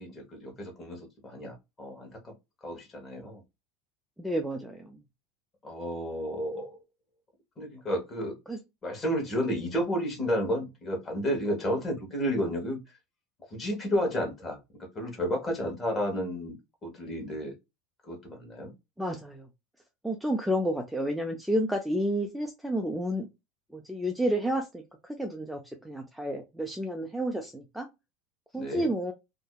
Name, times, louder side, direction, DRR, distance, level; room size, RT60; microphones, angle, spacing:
voice 1, 0.0-2.3 2.6-3.4 5.6-6.8 7.6-8.3 8.8-12.8 13.5-14.6 14.9-16.6 16.8-17.5 18.1-18.7 28.6-28.8, equal, 25° left, 1.3 m, -31 dB
voice 2, 4.2-5.0 8.5-8.6 19.0-19.5 20.0-23.3 23.7-27.9 28.5-29.1, equal, ahead, 0.4 m, -30 dB
2.6 x 2.1 x 2.3 m
supercardioid pair, 110°, 0 cm